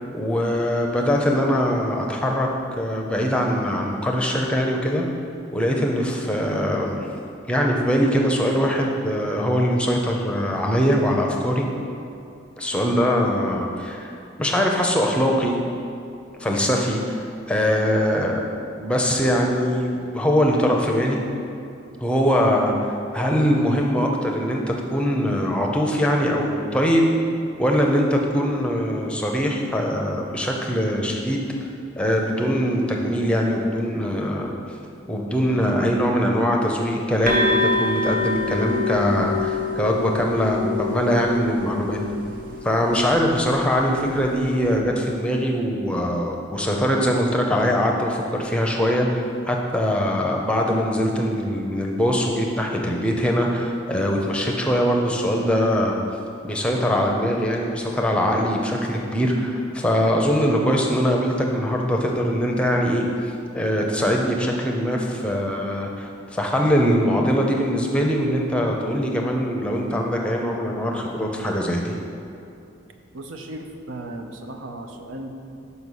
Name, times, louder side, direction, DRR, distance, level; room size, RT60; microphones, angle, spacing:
voice 1, 0.1-2.5 2.8-5.0 5.5-7.1 7.5-11.7 12.6-15.6 16.4-18.4 18.8-21.2 22.0-22.7 23.1-27.1 27.6-31.5 32.0-34.5 35.1-42.0 42.6-56.0 56.4-72.0, equal, 5° left, 0 dB, 0.6 m, -22 dB
sound 1, 37.3-44.8, left 3 dB, 45° right, 0.8 m, -27 dB
voice 2, 73.1-75.3, right 1 dB, 85° right, 5 dB, 0.6 m, -36 dB
5.5 x 5.4 x 6.3 m, 2.6 s
head